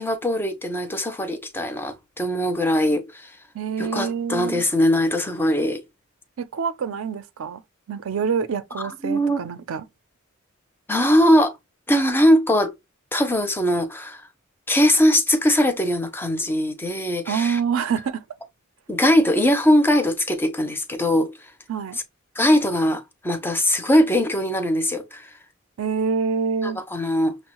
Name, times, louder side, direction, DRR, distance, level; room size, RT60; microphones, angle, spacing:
voice 1, 0.0-3.3 3.8-5.8 9.0-9.4 10.9-11.6 11.9-12.7 13.1-14.2 14.7-17.6 18.9-21.4 22.4-25.3 26.6-27.4, equal, 10° left, 0.4 m, -21 dB
voice 2, 3.5-4.6 6.4-7.6 7.9-9.8 17.3-18.2 21.7-22.0 25.8-26.8, right 6 dB, 70° right, 0.4 m, -26 dB
6.1 x 2.0 x 2.9 m
head